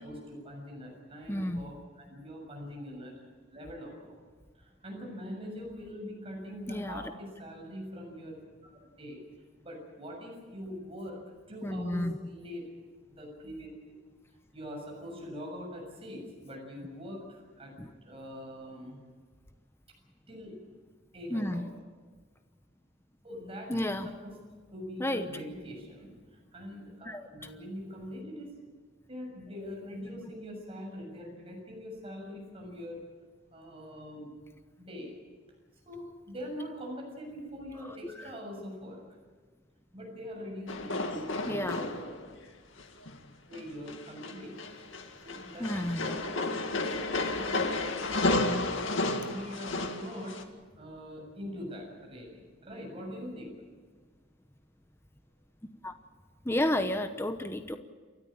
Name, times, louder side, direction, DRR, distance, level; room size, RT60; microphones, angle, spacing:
voice 1, 0.0-3.1 3.5-4.2 4.5-8.4 8.6-8.7 9.0-9.2 9.6-11.2 11.5-12.7 13.1-13.7 14.5-17.7 18.0-19.0 20.3-20.6 21.1-21.7 23.2-24.4 24.7-28.6 29.1-33.0 33.5-34.3 34.8-35.1 35.8-39.2 39.9-42.3 43.5-44.5 45.2-50.4 50.8-53.5, equal, 30° right, 0 dB, 7.0 m, -43 dB
voice 2, 1.3-1.7 6.7-7.0 11.6-12.2 17.8-17.9 21.3-21.6 23.7-24.1 25.0-25.2 27.0-27.3 37.9-38.3 41.5-41.8 45.6-46.2 55.8-55.9 56.4-57.8, left 1 dB, 15° left, 8 dB, 0.9 m, -31 dB
sound 1, 40.7-42.3 42.8-43.2 43.5-50.4, left 2 dB, 85° left, 2.1 m, -32 dB
29.0 x 13.5 x 8.7 m, 1.5 s
head